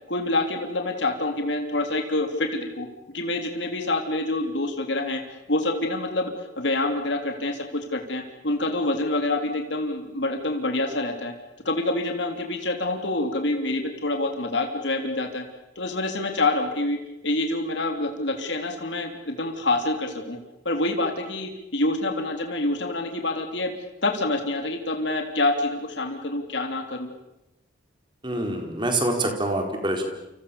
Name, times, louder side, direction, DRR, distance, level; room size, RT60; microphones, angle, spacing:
voice 1, 0.1-5.2 5.5-11.3 11.6-15.4 15.7-20.4 20.6-23.7 24.0-27.1, left 2 dB, 60° left, 4 dB, 3.3 m, -27 dB
voice 2, 28.2-30.0, right 1 dB, 25° right, 4 dB, 4.4 m, -25 dB
29.5 x 26.5 x 7.1 m, 0.92 s
head